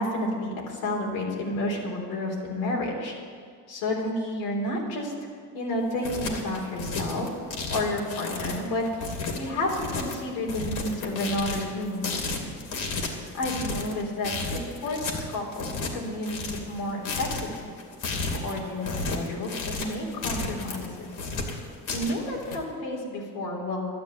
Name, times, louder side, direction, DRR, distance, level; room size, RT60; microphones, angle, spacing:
voice 1, 0.0-3.1 3.7-5.1 5.5-7.3 7.7-12.5 13.1-17.7 18.4-21.1 21.9-23.9, left 1 dB, 85° left, -2 dB, 3.8 m, -31 dB
sound 1, 5.8-22.6, left 3 dB, 55° left, 2.8 m, -33 dB
12.0 x 10.5 x 8.4 m, 2.1 s
cardioid pair, 115°, 36 cm